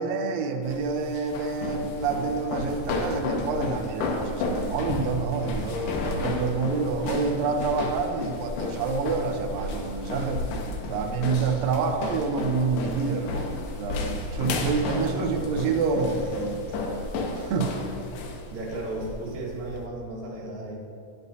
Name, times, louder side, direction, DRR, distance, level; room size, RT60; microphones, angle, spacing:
voice 1, 0.0-10.4 10.9-16.7 17.4-17.7, right 4 dB, 90° right, 5 dB, 1.5 m, -28 dB
sound 1, 0.6-19.9, left 2 dB, 80° left, 2.3 m, -32 dB
voice 2, 14.9-15.4 18.5-20.8, right 2 dB, 60° right, -4 dB, 2.7 m, -35 dB
9.5 x 7.9 x 2.7 m, 2.7 s
omnidirectional pair, 3.8 m